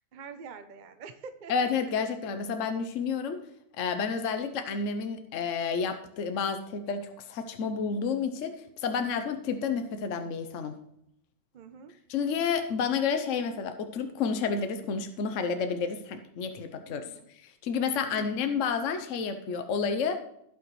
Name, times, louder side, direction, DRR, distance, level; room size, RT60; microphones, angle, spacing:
voice 1, 0.1-1.5 11.5-11.9 16.9-17.3 18.0-18.3, right 6 dB, 50° right, 8 dB, 0.5 m, -45 dB
voice 2, 1.5-3.4 3.8-10.7 12.1-17.1 17.3-20.2, left 5 dB, 60° left, 7 dB, 1.1 m, -30 dB
16.0 x 6.0 x 3.1 m, 0.75 s
omnidirectional pair, 1.6 m